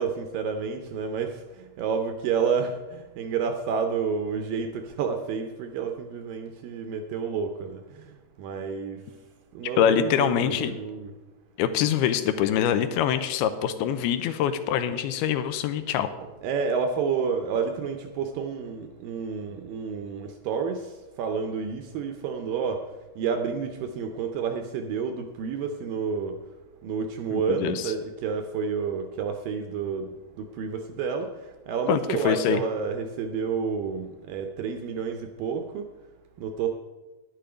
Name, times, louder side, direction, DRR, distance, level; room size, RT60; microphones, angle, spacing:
voice 1, 0.0-1.4 1.8-7.8 8.4-9.0 9.6-11.1 16.4-20.8 21.2-22.8 23.2-26.4 26.8-30.1 30.4-31.3 31.7-35.8 36.4-36.8, right 6 dB, 80° right, 6 dB, 2.1 m, -29 dB
voice 2, 9.8-10.7 11.6-16.1 27.3-27.9 31.9-32.6, left 9 dB, 85° left, 10 dB, 2.6 m, -24 dB
10.5 x 10.0 x 5.0 m, 1.2 s
omnidirectional pair, 4.6 m